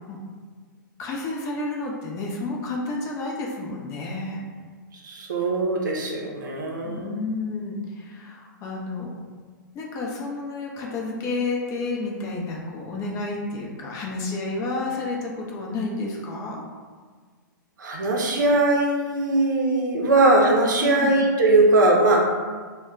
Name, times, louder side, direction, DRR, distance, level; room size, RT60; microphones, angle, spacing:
voice 1, 1.0-4.4 6.8-9.1 9.7-16.6 20.8-21.1, left 3 dB, 30° left, -2 dB, 0.5 m, -30 dB
voice 2, 5.0-7.2 17.8-22.3, right 2 dB, 65° right, 0 dB, 0.6 m, -20 dB
2.2 x 2.1 x 3.6 m, 1.5 s
figure-of-eight pair, 110°, 11 cm